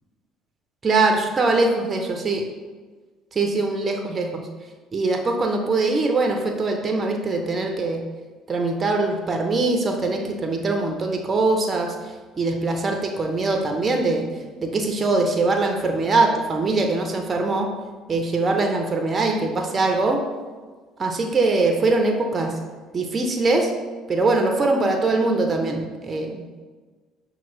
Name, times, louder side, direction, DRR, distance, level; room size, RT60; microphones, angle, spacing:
voice 1, 0.8-2.4 3.3-4.5 4.9-8.0 8.5-11.9 12.4-14.3 14.6-17.7 18.1-20.2 21.0-22.5 22.9-23.7 24.1-26.5, right 3 dB, 35° right, 3 dB, 0.6 m, -22 dB
5.7 x 2.4 x 3.1 m, 1.4 s
hypercardioid pair, 60°, 0 cm